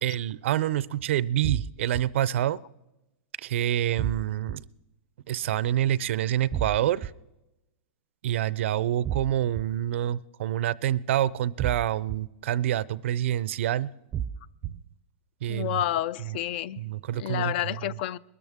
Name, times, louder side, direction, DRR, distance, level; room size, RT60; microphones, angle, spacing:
voice 1, 0.0-2.6 3.4-4.6 5.3-7.1 8.2-13.9 14.6-14.8 15.4-15.8 16.8-17.5, right 12 dB, 70° right, 0.4 m, -27 dB
sound 1, 1.4-2.0 4.0-4.6 6.5-7.1 9.0-9.6 11.6-12.2 14.1-14.7, right 9 dB, 20° right, 0.5 m, -31 dB
voice 2, 15.5-16.8 17.1-18.2, left 13 dB, 55° left, 0.4 m, -29 dB
21.5 x 13.5 x 3.5 m
supercardioid pair, 150°, 7 cm